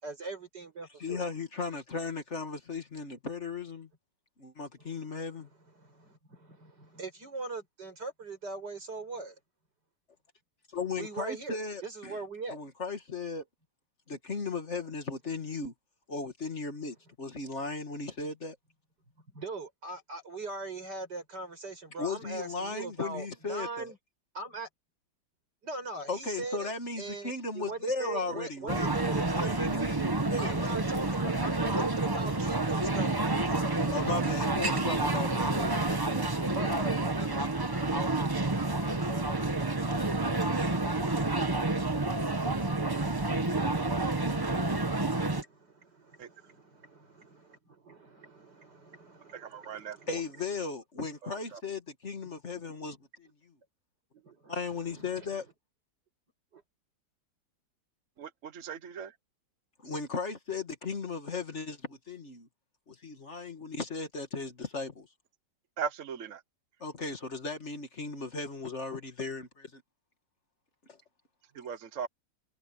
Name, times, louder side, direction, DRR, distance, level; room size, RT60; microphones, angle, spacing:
voice 1, 0.0-1.2 4.8-9.4 11.0-12.6 19.3-24.0 24.3-24.7 25.6-26.7 27.0-29.6 30.4-34.4 36.5-38.2 38.7-39.8 42.5-42.6 44.0-50.4 51.0-51.1 52.7-52.9 54.1-55.4 56.5-56.6, right 3 dB, 75° right, 7.1 m, -42 dB
voice 2, 1.0-3.9 4.4-5.5 10.7-12.2 12.5-13.4 14.1-15.7 16.1-18.6 22.0-23.9 26.1-28.9 29.3-30.8 33.9-36.3 50.1-53.5 54.5-55.4 59.8-62.5 62.9-65.1 66.8-69.8, left 4 dB, 40° left, 2.2 m, -36 dB
sound 1, 28.7-45.4, right 2 dB, 15° right, 1.0 m, -29 dB
voice 3, 49.3-50.0 58.2-59.1 65.8-66.4 71.6-72.1, right 7 dB, 55° right, 1.2 m, -38 dB
omnidirectional pair, 1.8 m